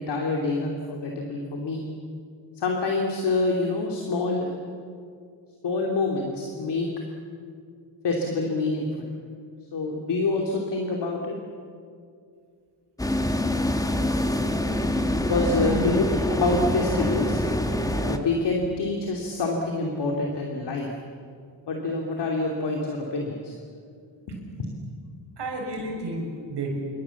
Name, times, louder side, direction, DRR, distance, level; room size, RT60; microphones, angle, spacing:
voice 1, 0.0-1.8 2.6-4.5 5.6-6.9 8.0-9.1 9.7-11.3 15.3-17.4 18.0-20.9 21.7-23.5 24.3-24.7, left 3 dB, 60° left, 1 dB, 3.2 m, -26 dB
sound 1, 13.0-18.2, left 1 dB, 10° left, 1.5 m, -25 dB
voice 2, 15.5-16.0 25.4-26.7, right 1 dB, 60° right, 0 dB, 6.5 m, -31 dB
28.0 x 24.5 x 7.3 m, 2.3 s
wide cardioid pair, 140°, 45 cm